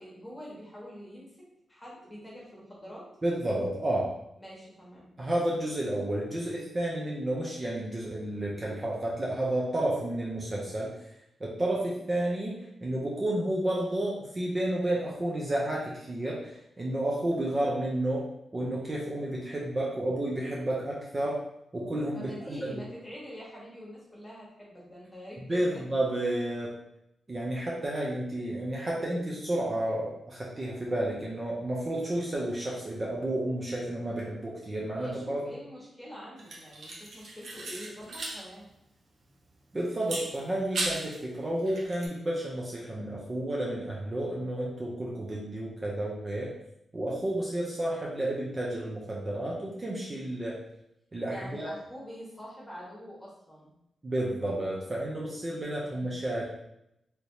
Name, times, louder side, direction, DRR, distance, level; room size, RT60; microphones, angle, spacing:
voice 1, 0.0-3.1 4.4-5.1 22.1-25.8 34.9-38.7 51.2-53.7 55.7-56.2, equal, 15° left, -5 dB, 1.2 m, -45 dB
voice 2, 3.2-4.1 5.2-10.9 11.4-18.2 18.5-21.4 21.7-22.7 25.5-26.8 27.3-35.4 39.7-46.6 46.9-50.6 51.1-51.7 54.0-56.5, right 1 dB, 25° right, -4 dB, 0.6 m, -31 dB
sound 1, 36.4-38.4 38.7-38.8 40.0-41.2 41.6-42.1, right 2 dB, 70° right, 0.8 m, -36 dB
3.3 x 2.9 x 2.7 m, 0.82 s
wide cardioid pair, 120°, 0 cm